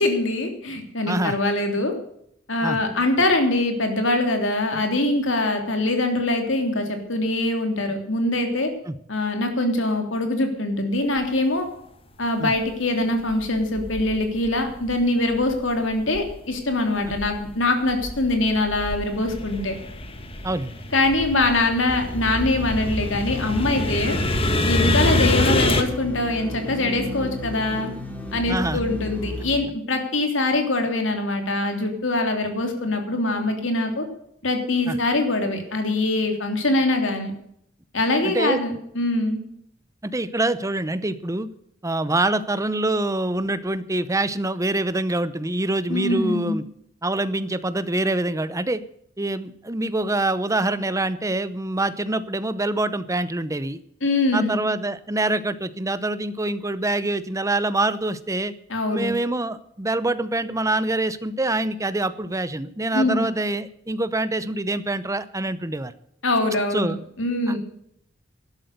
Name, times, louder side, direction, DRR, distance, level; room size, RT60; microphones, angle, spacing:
voice 1, 0.0-1.9 2.5-8.7 9.1-11.7 12.2-19.8 20.9-24.2 24.6-27.9 28.3-34.0 34.4-37.3 37.9-39.4 45.9-46.6 54.0-54.6 58.7-59.1 62.9-63.3 66.2-67.6, left 2 dB, 70° left, 5 dB, 3.3 m, -23 dB
voice 2, 1.1-1.4 2.6-2.8 8.9-9.0 12.4-12.5 20.4-20.7 24.8-25.0 28.5-28.8 34.9-35.0 38.2-38.6 40.0-41.5 41.8-46.6 47.0-48.8 49.2-53.8 54.3-58.5 58.9-65.9 66.7-67.0 67.5-67.6, right 2 dB, 15° right, 14 dB, 0.8 m, -25 dB
sound 1, 12.6-12.7 13.3-14.9 15.3-16.6 17.0-25.8, left 1 dB, 30° left, 1.6 m, -26 dB
sound 2, 21.9-29.6, left 1 dB, 10° left, 2.8 m, -33 dB
12.5 x 12.0 x 6.7 m, 0.71 s
head